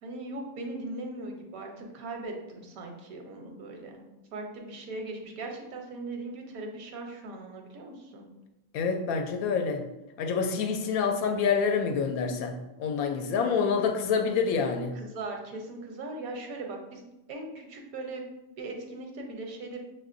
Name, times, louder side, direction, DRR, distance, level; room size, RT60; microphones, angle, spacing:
voice 1, 0.0-4.0 4.3-8.2 14.9-17.0 17.3-18.3 18.6-19.8, right 2 dB, 80° right, 2 dB, 1.2 m, -39 dB
voice 2, 8.7-9.8 10.2-15.0, left 5 dB, 80° left, 5 dB, 1.0 m, -27 dB
6.0 x 2.9 x 2.5 m, 0.96 s
omnidirectional pair, 1.5 m